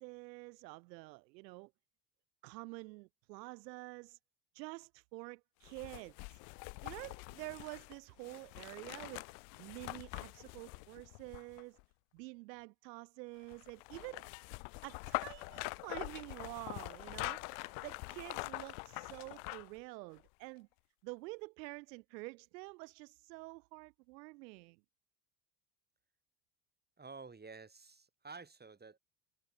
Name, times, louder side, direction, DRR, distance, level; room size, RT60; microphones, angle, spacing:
voice 1, 0.0-1.7 2.4-4.2 4.5-6.1 6.8-9.2 9.6-11.8 12.1-14.2 14.8-20.7 21.0-24.8, right 24 dB, 75° right, 1.6 m, -48 dB
sound 1, 5.6-11.8 13.5-19.8 20.2-20.3, left 40 dB or more, 65° left, 0.6 m, -44 dB
voice 2, 27.0-29.0, right 4 dB, 20° right, 5.1 m, -51 dB
hypercardioid pair, 85°, 50 cm